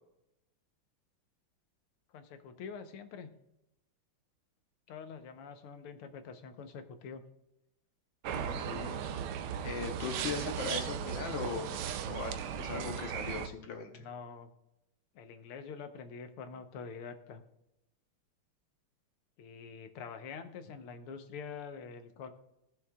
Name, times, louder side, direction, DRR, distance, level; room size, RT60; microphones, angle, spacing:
voice 1, 2.1-3.4 4.9-7.2 13.9-14.5 15.2-17.4 19.4-22.3, left 5 dB, 85° left, 8 dB, 1.8 m, -46 dB
sound 1, 8.2-13.5, right 8 dB, 90° right, 1.5 m, -37 dB
voice 2, 8.3-9.0 9.6-11.7 12.1-14.0, left 6 dB, 65° left, 4 dB, 1.6 m, -39 dB
17.0 x 7.0 x 2.3 m, 0.87 s
omnidirectional pair, 2.4 m